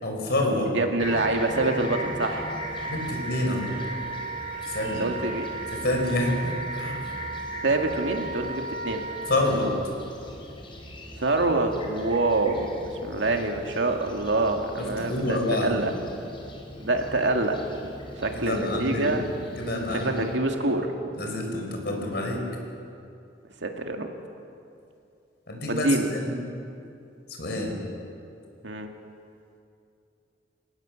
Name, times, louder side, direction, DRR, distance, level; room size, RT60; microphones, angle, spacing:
voice 1, 0.0-0.8 2.9-3.7 4.6-5.1 5.7-7.1 9.3-9.7 14.8-15.9 18.3-19.1 19.6-20.3 21.1-22.4 25.5-26.3 27.4-27.8, left 1 dB, 65° left, 1 dB, 4.9 m, -27 dB
voice 2, 0.7-2.5 5.0-5.4 7.6-9.0 11.2-15.9 16.8-17.9 18.2-19.2 19.9-20.9 23.6-24.1 25.7-26.1 28.6-28.9, right 2 dB, 90° right, 3 dB, 2.1 m, -26 dB
Fixed-wing aircraft airplane, 1.0-20.4, left 1 dB, 30° left, 3.9 m, -41 dB
Wind instrument woodwind instrument, 1.1-9.4, right 4 dB, 50° right, 1.4 m, -36 dB
25.0 x 17.5 x 7.2 m, 2.6 s
head